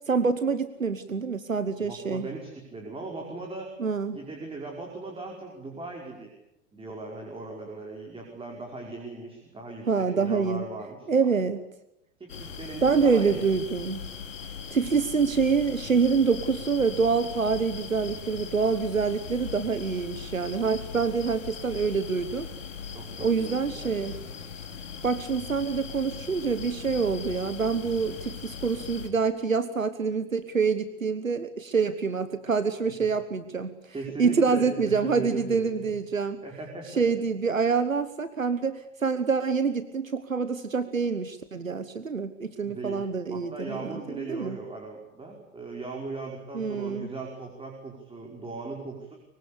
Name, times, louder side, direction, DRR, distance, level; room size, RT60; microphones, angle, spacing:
voice 1, 0.1-2.3 3.8-4.2 9.9-10.6 11.1-11.6 12.8-14.1 14.7-22.5 23.2-24.2 25.0-33.7 34.2-36.4 37.0-44.6 46.5-47.1, right 5 dB, 85° right, 12 dB, 1.3 m, -26 dB
voice 2, 1.8-3.7 4.1-6.3 6.7-11.3 12.2-13.4 22.9-24.3 33.9-35.8 36.4-37.0 42.6-43.0 43.3-49.1, right 3 dB, 15° right, 0 dB, 5.4 m, -38 dB
sound 1, 12.3-29.1, left 6 dB, 70° left, 3.0 m, -39 dB
24.0 x 24.0 x 8.6 m, 0.82 s
figure-of-eight pair, 90°, 39 cm